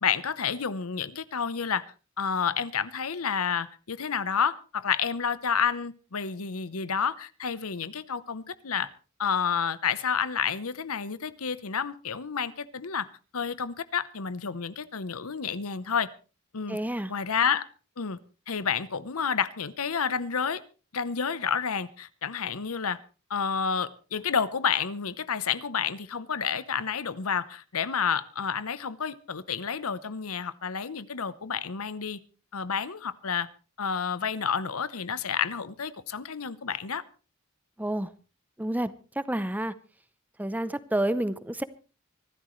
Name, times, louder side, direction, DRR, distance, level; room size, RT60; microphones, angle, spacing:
voice 1, 0.0-1.8 2.2-8.9 9.2-13.1 13.3-16.1 16.5-16.8 17.1-17.7 18.0-18.2 18.5-20.6 20.9-23.0 23.3-32.2 32.5-33.5 33.8-37.0, left 6 dB, 85° left, 0.9 m, -30 dB
voice 2, 16.7-17.1 37.8-38.1 38.6-39.7 40.4-41.6, right 1 dB, 10° right, 0.6 m, -29 dB
25.0 x 12.5 x 3.2 m
head